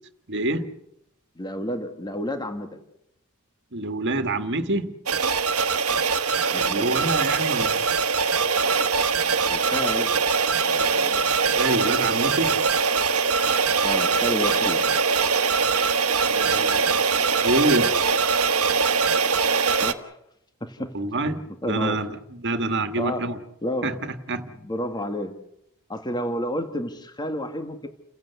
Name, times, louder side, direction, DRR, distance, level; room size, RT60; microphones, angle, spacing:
voice 1, 0.3-0.7 3.7-4.9 6.5-7.8 11.5-12.6 16.3-16.9 17.3-17.9 20.9-23.4 23.8-24.5, right 2 dB, 55° right, 1.9 m, -26 dB
voice 2, 1.4-2.8 6.5-7.0 9.5-10.2 10.5-11.2 13.8-14.9 19.8-20.1 20.6-21.0 21.6-22.0 23.0-23.4 23.6-24.0 24.6-25.4 25.9-27.9, left 1 dB, 20° left, 1.9 m, -30 dB
sound 1, 5.1-19.9, right 5 dB, 75° right, 1.3 m, -22 dB
30.0 x 16.0 x 8.2 m
head